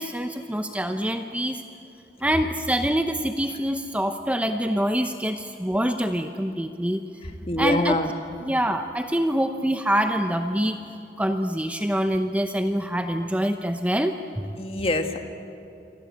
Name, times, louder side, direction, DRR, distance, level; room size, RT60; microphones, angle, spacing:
voice 1, 0.0-1.6 2.2-7.0 7.6-8.0 8.4-10.8 11.2-14.1 14.4-14.5, equal, 5° right, 7 dB, 0.8 m, -25 dB
voice 2, 7.5-8.1 14.6-15.2, left 2 dB, 30° left, 6 dB, 1.8 m, -24 dB
28.0 x 24.5 x 8.6 m, 2.8 s
head